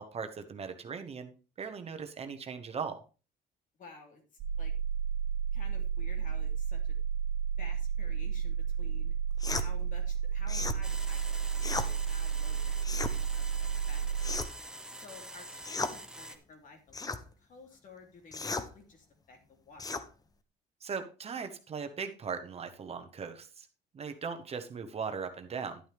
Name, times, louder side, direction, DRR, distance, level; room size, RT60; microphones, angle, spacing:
voice 1, 0.0-3.0 20.8-23.7 23.9-25.8, right 6 dB, 35° right, 7 dB, 1.1 m, -39 dB
voice 2, 3.8-4.7 5.5-7.0 7.6-9.1 9.5-20.1, left 4 dB, 50° left, 3 dB, 2.9 m, -53 dB
sound 1, 4.4-14.4, right 7 dB, 85° right, 1.4 m, -32 dB
sound 2, 9.4-9.7 10.5-10.8 11.6-11.9 12.8-13.2 14.2-14.7 15.6-16.0 16.9-17.2 18.3-18.7 19.8-20.1, left 3 dB, 20° left, 0.9 m, -35 dB
sound 3, 10.8-16.4, right 1 dB, 5° right, 1.4 m, -45 dB
11.0 x 8.9 x 3.4 m, 0.33 s
cardioid pair, 110°, 17 cm